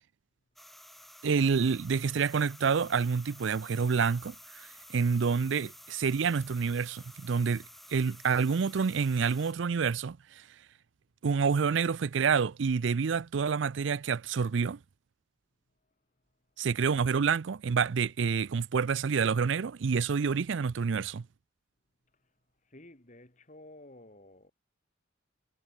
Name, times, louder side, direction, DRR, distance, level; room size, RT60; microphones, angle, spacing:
sound 1, 0.6-9.5, equal, ahead, 2.6 m, -52 dB
voice 1, 1.2-4.6 4.9-7.6 7.9-10.4 11.2-14.8 16.6-21.2, right 5 dB, 75° right, 0.5 m, -28 dB
voice 2, 22.6-24.5, left 1 dB, 40° left, 3.1 m, -53 dB
head